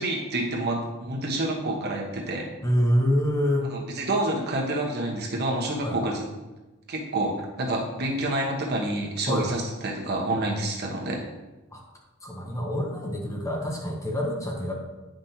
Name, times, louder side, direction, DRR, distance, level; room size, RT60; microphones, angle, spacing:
voice 1, 0.0-2.4 3.7-6.2 6.9-11.2, right 1 dB, 50° right, -1 dB, 1.2 m, -28 dB
voice 2, 2.6-3.7 5.8-6.0 9.3-9.5 11.7-11.8 12.2-14.7, equal, 15° left, 0 dB, 0.9 m, -26 dB
9.2 x 5.2 x 2.9 m, 1.1 s
head